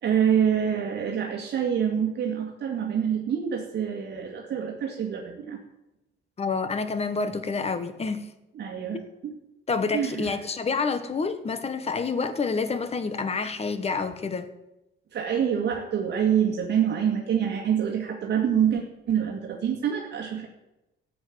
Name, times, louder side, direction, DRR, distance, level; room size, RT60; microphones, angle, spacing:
voice 1, 0.0-5.6 8.5-9.3 9.9-10.4 15.1-20.5, right 8 dB, 55° right, 0 dB, 2.1 m, -26 dB
voice 2, 6.4-8.3 8.9-9.1 9.7-14.5, left 4 dB, 30° left, 11 dB, 1.3 m, -28 dB
14.5 x 7.5 x 9.3 m, 0.94 s
cardioid pair, 130°, 21 cm